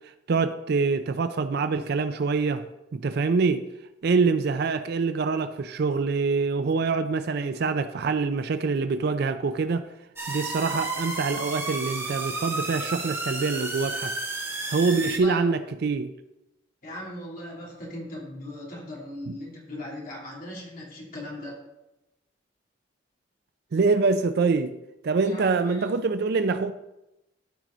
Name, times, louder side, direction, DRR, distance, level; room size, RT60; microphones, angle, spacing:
voice 1, 0.3-2.7 2.9-3.7 4.0-9.9 10.3-14.1 14.7-16.1 19.3-19.4 23.7-24.8 25.0-26.7, right 4 dB, 55° right, 0.4 m, -25 dB
sound 1, 10.2-15.2, right 2 dB, 15° right, 1.1 m, -32 dB
voice 2, 16.8-21.5 25.2-25.9, left 1 dB, 45° left, 2.8 m, -38 dB
13.0 x 4.8 x 3.8 m
head